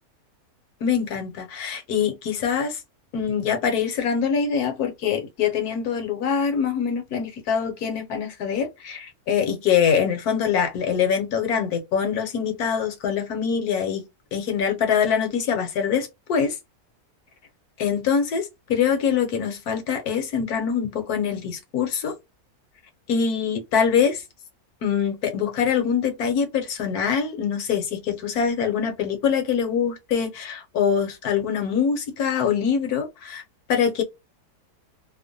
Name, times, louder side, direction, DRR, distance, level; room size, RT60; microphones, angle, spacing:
voice 1, 0.8-2.8 3.1-14.0 14.3-16.5 17.8-22.1 23.1-24.1 24.8-33.4 33.7-34.0, left 7 dB, 75° left, 1.3 m, -24 dB
3.0 x 2.1 x 2.4 m
omnidirectional pair, 1.6 m